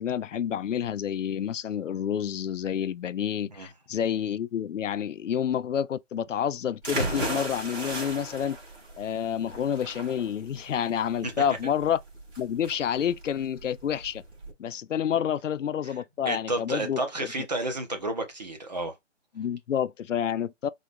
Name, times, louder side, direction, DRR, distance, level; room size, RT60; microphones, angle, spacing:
voice 1, 0.0-8.6 9.0-12.0 12.4-14.2 14.6-17.3 19.4-20.7, left 9 dB, 80° left, 0.5 m, -29 dB
sound 1, 6.8-14.5, right 1 dB, 60° right, 2.3 m, -35 dB
voice 2, 16.3-18.9, right 2 dB, 35° right, 0.9 m, -31 dB
4.0 x 2.4 x 3.2 m
hypercardioid pair, 170°, 37 cm